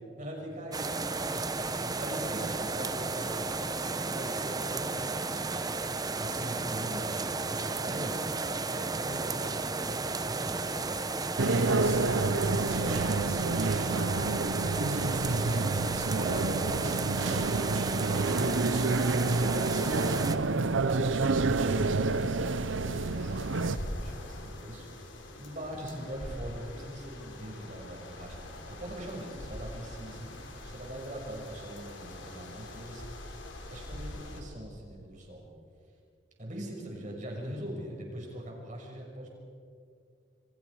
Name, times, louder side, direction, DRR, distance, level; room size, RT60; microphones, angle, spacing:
voice 1, 0.2-5.5 6.2-8.3 8.7-10.9 11.4-16.0 16.2-18.7 19.5-33.0 33.7-35.5 36.4-39.3, right 1 dB, 40° right, -1 dB, 6.2 m, -42 dB
Rainy night with thunder and water dropping, 0.7-20.4, right 3 dB, 20° right, 0.9 m, -33 dB
sound 1, 11.4-23.8, right 3 dB, 85° right, 0.8 m, -28 dB
sound 2, 21.1-34.4, left 1 dB, 75° left, 3.6 m, -44 dB
28.0 x 25.5 x 5.0 m, 2.3 s
head